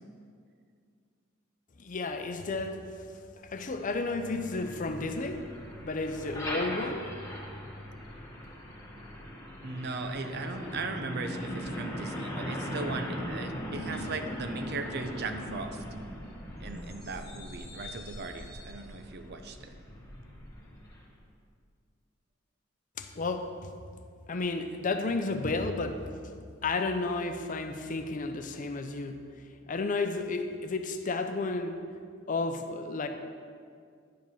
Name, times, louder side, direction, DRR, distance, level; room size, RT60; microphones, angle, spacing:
voice 1, 1.8-3.0 3.4-5.5 5.8-7.1 23.0-23.7 24.3-26.0 26.6-29.3 29.6-31.8 32.3-33.1, left 3 dB, 40° left, 7 dB, 0.6 m, -32 dB
Truck, 3.5-21.2, equal, 20° left, 1.6 m, -40 dB
voice 2, 9.6-15.8 16.6-19.8, right 3 dB, 55° right, 7 dB, 0.6 m, -38 dB
10.0 x 5.2 x 5.5 m, 2.2 s
head